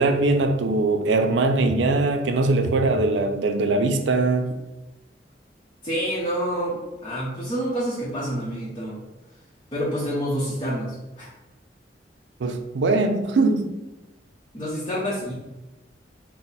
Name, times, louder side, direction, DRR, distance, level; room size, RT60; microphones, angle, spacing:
voice 1, 0.0-4.5 12.4-13.7, right 3 dB, 85° right, 6 dB, 0.4 m, -21 dB
voice 2, 5.8-9.0 9.7-11.3 14.5-15.3, equal, 25° left, -7 dB, 0.7 m, -28 dB
4.1 x 2.0 x 4.0 m, 1.0 s
head